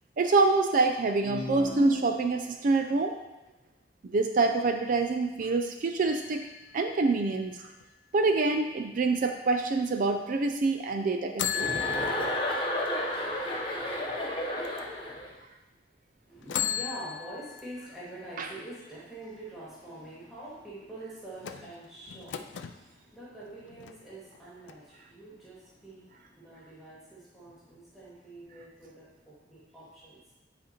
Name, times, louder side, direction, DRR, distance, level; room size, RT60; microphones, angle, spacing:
voice 1, 0.2-3.1 4.1-6.5 6.7-7.6 8.1-11.8 18.4-18.5, right 3 dB, 50° right, 6 dB, 0.4 m, -26 dB
sound 1, 1.2-2.8, left 2 dB, 60° left, 0.8 m, -37 dB
sound 2, 6.0-7.8 11.4-14.5 15.0-15.1 16.4-18.2 21.4-22.8 23.5-24.4 24.7-24.8, left 9 dB, 85° left, 0.4 m, -36 dB
Chuckle chortle, 11.5-15.3, equal, 30° left, 0.9 m, -32 dB
voice 2, 16.3-30.2, right 1 dB, ahead, -9 dB, 2.1 m, -45 dB
9.8 x 4.2 x 3.0 m, 1.0 s
head